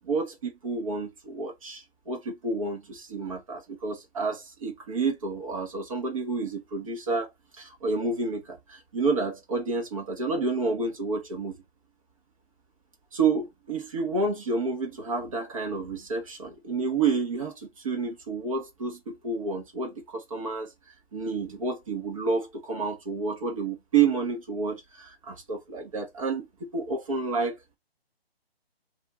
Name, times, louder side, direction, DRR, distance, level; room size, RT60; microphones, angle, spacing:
voice 1, 0.0-11.6 13.1-20.7 21.1-26.5 26.7-27.6, right 4 dB, 35° right, 1.1 m, -29 dB
2.7 x 2.4 x 4.0 m
figure-of-eight pair, 155°, 31 cm